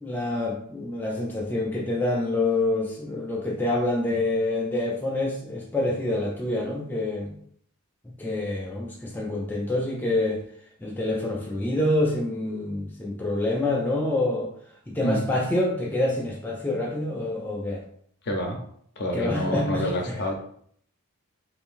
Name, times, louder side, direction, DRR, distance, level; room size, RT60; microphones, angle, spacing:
voice 1, 0.0-7.3 8.0-10.4 10.8-14.5 14.9-17.8 19.1-20.2, left 2 dB, 10° left, -2 dB, 0.3 m, -27 dB
voice 2, 18.3-18.6 19.0-20.3, left 1 dB, 50° left, 3 dB, 0.6 m, -27 dB
2.6 x 2.6 x 3.5 m, 0.64 s
head